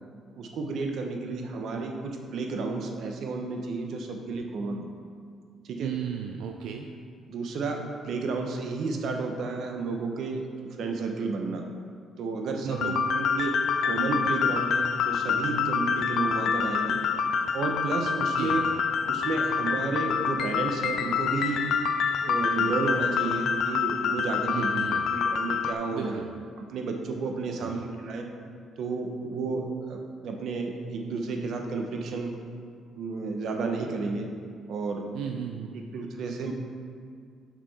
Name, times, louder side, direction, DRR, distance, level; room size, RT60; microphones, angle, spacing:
voice 1, 0.3-4.9 5.7-5.9 6.6-6.8 7.3-10.4 10.8-11.6 12.2-17.0 17.5-18.7 19.1-21.6 22.2-26.2 26.6-28.3 28.8-32.3 33.0-34.3 34.7-35.3 35.7-36.5, right 3 dB, 60° right, 3 dB, 0.8 m, -32 dB
voice 2, 5.8-6.9 12.6-13.0 18.4-18.7 24.5-25.1 25.9-26.3 27.6-27.8 35.1-35.8, right 9 dB, 85° right, 3 dB, 0.3 m, -35 dB
sound 1, 12.7-25.7, left 6 dB, 60° left, 0.3 m, -27 dB
6.0 x 5.7 x 4.1 m, 2.2 s
cardioid pair, 145°, 0 cm